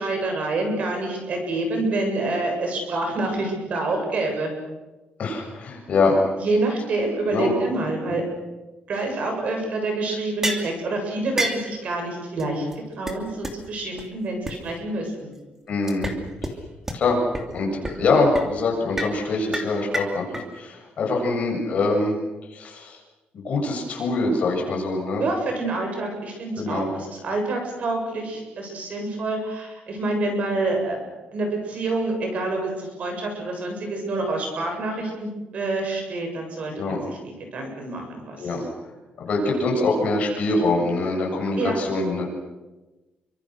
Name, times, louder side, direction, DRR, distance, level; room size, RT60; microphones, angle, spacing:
voice 1, 0.0-4.5 6.4-8.2 8.9-12.7 13.0-15.3 25.2-31.0 31.3-37.2 37.5-38.5 41.6-41.8, right 2 dB, 45° right, 3 dB, 7.6 m, -27 dB
voice 2, 5.2-6.2 7.3-7.5 8.1-8.2 15.7-16.1 16.4-16.5 16.9-17.2 17.5-22.2 22.5-23.0 23.3-25.3 26.6-26.9 36.7-37.0 38.4-38.6 39.2-42.2, left 3 dB, 45° left, 0 dB, 7.6 m, -24 dB
sound 1, 10.4-10.7 11.4-11.7 12.4-12.5 12.7-12.8 13.1-13.2 13.4-13.5 14.0-14.1 14.5-14.6 15.9-16.2 16.4-16.5 16.9-17.0 17.3-17.4 17.8-18.1 18.3-18.5 19.0-19.2 19.5-20.4, right 1 dB, 15° right, 2.8 m, -28 dB
29.5 x 25.0 x 6.6 m, 1.1 s
cardioid pair, 175°, 3 cm